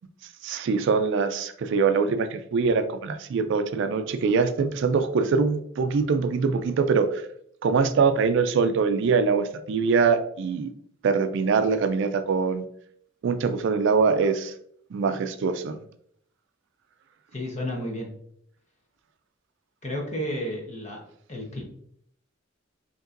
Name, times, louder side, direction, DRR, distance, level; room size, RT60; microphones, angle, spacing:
voice 1, 0.4-7.2 7.6-10.7 11.0-12.6 13.2-14.5 14.9-15.8, right 5 dB, 65° right, 9 dB, 0.4 m, -23 dB
voice 2, 17.3-18.1 19.8-21.0 21.3-21.6, equal, 35° left, 0 dB, 1.0 m, -31 dB
5.2 x 2.9 x 2.5 m, 0.67 s
head